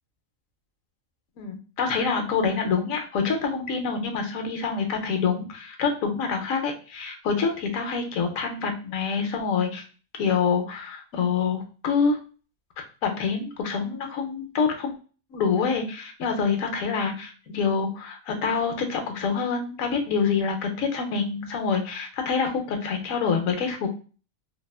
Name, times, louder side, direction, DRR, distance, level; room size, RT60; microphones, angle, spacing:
voice 1, 1.4-9.8 10.2-12.2 13.0-14.9 15.3-23.9, left 5 dB, 75° left, 5 dB, 1.0 m, -26 dB
2.8 x 2.1 x 2.3 m, 0.36 s
omnidirectional pair, 1.5 m